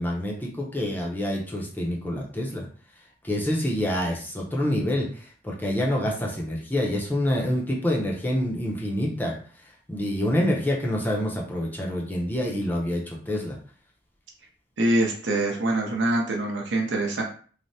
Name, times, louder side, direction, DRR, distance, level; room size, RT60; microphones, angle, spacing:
voice 1, 0.0-2.7 3.2-9.4 9.9-13.6, left 1 dB, 10° left, -3 dB, 0.5 m, -27 dB
voice 2, 14.8-17.2, right 1 dB, 80° right, 1 dB, 0.7 m, -24 dB
3.2 x 2.0 x 2.6 m, 0.43 s
head